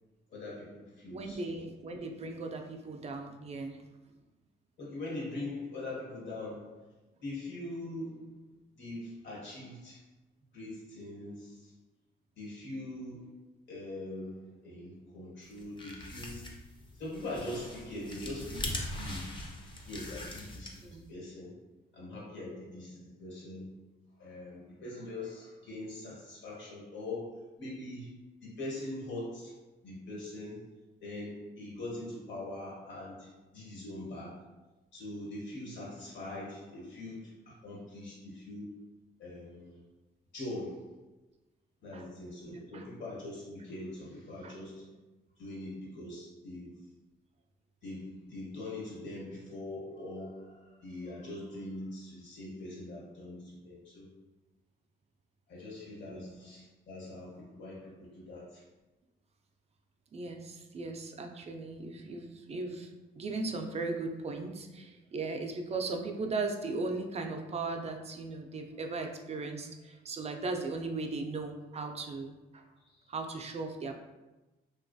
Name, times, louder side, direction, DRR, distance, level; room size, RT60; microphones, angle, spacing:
voice 1, 0.3-1.7 4.8-6.9 7.2-10.0 10.5-11.7 12.3-13.4 13.7-16.6 16.9-19.5 19.8-21.5 21.9-23.7 24.2-29.6 29.8-30.7 31.0-34.4 34.9-38.8 39.2-39.8 40.3-41.0 41.8-45.0 45.4-46.9 47.8-54.1 55.5-58.6 69.9-70.0 72.8-73.1, left 1 dB, 65° left, -6 dB, 1.3 m, -42 dB
voice 2, 1.1-3.8 20.8-21.1 41.9-42.1 42.7-42.9 44.4-44.6 56.1-56.4 60.1-72.6 73.1-74.0, right 3 dB, 35° right, 4 dB, 0.4 m, -37 dB
sound 1, 15.5-21.0, left 1 dB, 25° left, 0.5 m, -41 dB
3.0 x 2.3 x 2.5 m, 1.1 s
cardioid pair, 90°, 20 cm